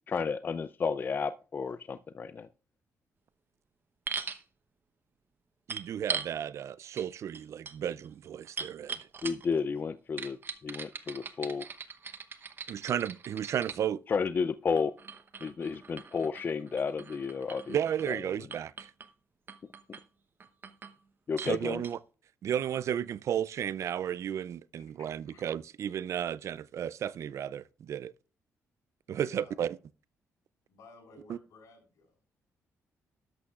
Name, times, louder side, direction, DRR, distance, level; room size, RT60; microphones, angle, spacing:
voice 1, 0.1-2.5 9.2-10.4 10.6-11.7 14.1-14.9 15.4-17.8 18.1-18.2 21.3-21.8, left 5 dB, 35° left, 0.4 m, -32 dB
Beer bottles, 4.1-4.4 5.7-6.3 7.0-7.1 7.3-9.6 10.2-13.8 14.8-18.2 18.5-19.1 19.5-20.0 20.4-21.0 21.4-21.6 21.8-21.9, right 5 dB, 40° right, 0.9 m, -40 dB
voice 2, 5.7-9.0 12.7-14.0 17.7-18.9 21.4-22.0 22.4-28.1 29.1-29.8 31.3-31.4, right 9 dB, 60° right, 0.4 m, -33 dB
voice 3, 24.8-25.4 29.2-29.6 30.7-32.2, left 3 dB, 75° left, 6.6 m, -55 dB
13.0 x 11.0 x 2.4 m
cardioid pair, 105°, 6 cm